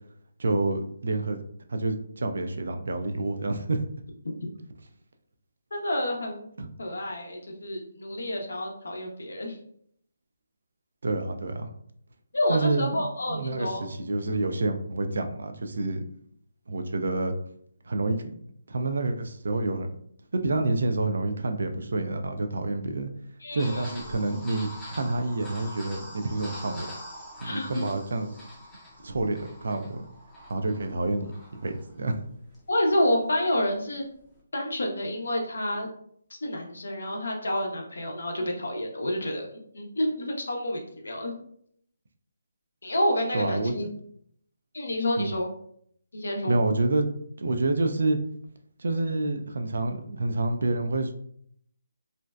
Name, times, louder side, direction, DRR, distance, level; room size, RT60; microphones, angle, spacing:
voice 1, 0.4-1.4 1.7-3.8 6.6-6.7 11.0-11.7 12.5-16.0 16.7-17.3 17.9-18.2 18.7-19.9 20.3-23.1 23.5-26.9 27.4-28.3 29.0-30.1 30.5-31.3 31.6-32.2 43.3-43.9 45.2-45.3 46.5-47.1 47.4-48.2 48.8-51.1, right 2 dB, 70° right, 6 dB, 0.3 m, -28 dB
voice 2, 5.7-6.4 6.8-9.6 12.3-13.8 23.4-24.1 27.4-27.9 32.7-34.0 34.5-35.9 36.4-39.5 39.7-41.3 42.8-43.9 44.7-45.5 46.1-46.6, left 1 dB, 80° left, 1 dB, 0.6 m, -29 dB
sound 1, 23.6-34.4, equal, 5° left, 0.5 m, -45 dB
2.5 x 2.1 x 2.2 m, 0.66 s
figure-of-eight pair, 155°, 0 cm